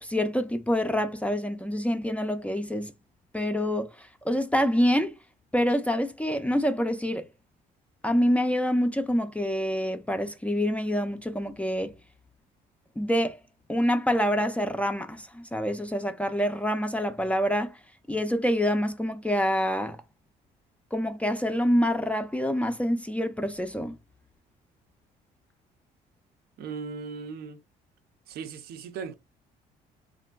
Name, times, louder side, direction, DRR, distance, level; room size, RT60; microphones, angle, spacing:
voice 1, 0.0-2.9 3.3-5.1 5.5-7.3 8.0-11.9 13.0-13.4 13.7-17.8 18.1-20.0 20.9-24.0, equal, 10° left, 0.3 m, -26 dB
voice 2, 26.6-27.6 28.3-29.1, right 5 dB, 70° right, 0.5 m, -37 dB
3.0 x 2.5 x 2.2 m
cardioid pair, 110°, 17 cm